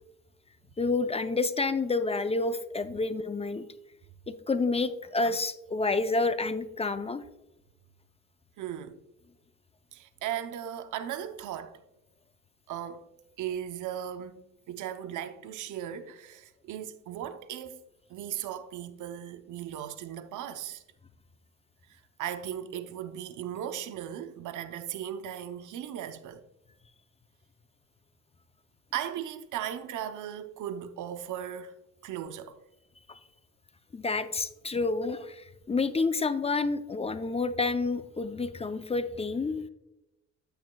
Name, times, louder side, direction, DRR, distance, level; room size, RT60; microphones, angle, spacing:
voice 1, 0.8-3.6 4.3-7.2 33.1-33.2 33.9-39.7, left 3 dB, 20° left, 0.5 m, -29 dB
voice 2, 8.6-9.0 9.9-11.8 12.7-13.1 13.4-17.8 18.1-20.8 21.9-26.4 28.9-31.8 32.0-32.6, right 10 dB, 80° right, 0.7 m, -37 dB
9.1 x 9.1 x 2.2 m
cardioid pair, 90°, 30 cm